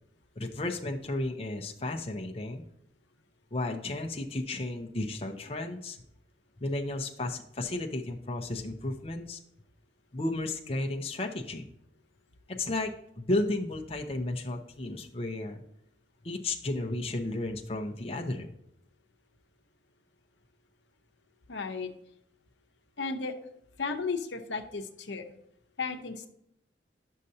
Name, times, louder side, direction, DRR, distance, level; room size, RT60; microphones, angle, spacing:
voice 1, 0.4-2.6 3.5-6.0 6.6-9.4 10.1-11.6 12.5-12.9 13.2-15.6 16.2-18.5, left 2 dB, 35° left, 3 dB, 0.7 m, -33 dB
voice 2, 21.5-21.9 23.0-23.3 23.8-25.3 25.8-26.3, left 4 dB, 75° left, 5 dB, 0.8 m, -34 dB
10.5 x 6.5 x 2.8 m, 0.74 s
head